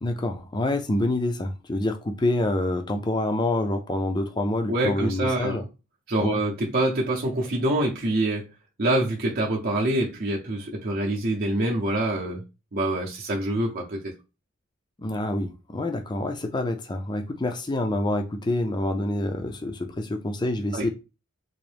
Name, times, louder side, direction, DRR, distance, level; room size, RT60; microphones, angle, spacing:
voice 1, 0.0-5.6 6.2-6.4 15.0-20.9, left 1 dB, 20° left, 0.4 m, -27 dB
voice 2, 4.7-5.6 6.1-8.5 8.8-12.4 12.7-14.1 20.7-20.9, right 1 dB, 45° right, 0.7 m, -25 dB
3.8 x 2.6 x 3.3 m
head